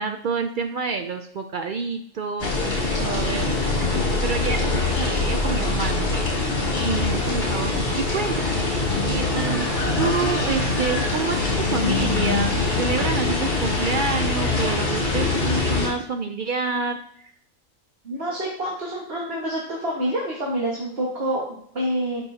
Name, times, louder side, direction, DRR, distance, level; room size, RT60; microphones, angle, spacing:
voice 1, 0.0-3.6 3.9-6.1 6.8-9.7 10.0-17.3, right 5 dB, 65° right, 5 dB, 0.5 m, -28 dB
sound 1, 2.4-15.9, left 3 dB, 60° left, 2.7 m, -23 dB
voice 2, 18.0-22.2, right 1 dB, 50° right, -4 dB, 1.8 m, -27 dB
12.0 x 5.4 x 2.8 m, 0.66 s
omnidirectional pair, 1.3 m